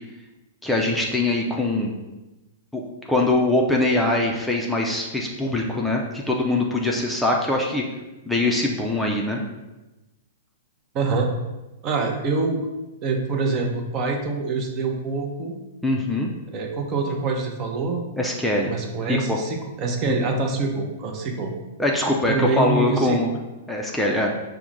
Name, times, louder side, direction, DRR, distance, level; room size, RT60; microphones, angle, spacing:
voice 1, 0.6-1.9 2.7-2.8 3.1-7.8 8.3-9.4 15.8-16.3 18.2-18.7 19.1-19.4 20.1-20.2 21.8-23.3 23.7-24.3, left 2 dB, 5° left, -2 dB, 0.5 m, -22 dB
voice 2, 10.9-11.3 11.8-12.6 13.0-15.5 16.5-18.0 18.7-21.5 22.3-23.2, right 3 dB, 35° right, 2 dB, 0.6 m, -25 dB
5.7 x 2.1 x 3.7 m, 1.1 s
figure-of-eight pair, 110°, 0 cm